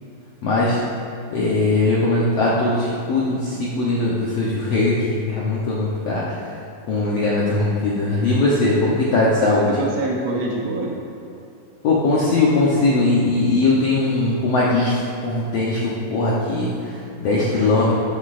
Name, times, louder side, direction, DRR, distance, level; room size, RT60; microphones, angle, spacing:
voice 1, 0.4-0.8 1.3-6.3 6.9-9.7 11.8-17.9, left 2 dB, 75° left, -6 dB, 1.4 m, -20 dB
voice 2, 9.4-11.0 17.3-17.9, right 2 dB, 85° right, -2 dB, 1.4 m, -26 dB
12.0 x 7.4 x 2.5 m, 2.7 s
omnidirectional pair, 4.1 m